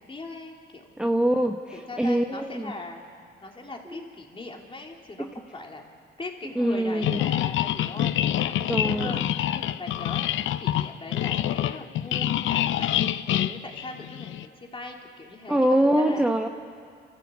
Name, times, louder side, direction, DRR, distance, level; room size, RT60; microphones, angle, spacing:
voice 1, 0.0-1.2 1.7-3.0 3.4-5.8 6.2-16.2, left 2 dB, 25° left, 1 dB, 3.2 m, -40 dB
voice 2, 1.0-2.7 3.9-4.0 5.2-5.3 6.6-7.2 8.7-9.2 15.5-16.5, right 1 dB, 5° right, 3 dB, 1.0 m, -24 dB
sound 1, 7.0-14.5, left 12 dB, 80° left, 0.6 m, -26 dB
28.0 x 14.0 x 8.4 m, 2.2 s
cardioid pair, 90°, 20 cm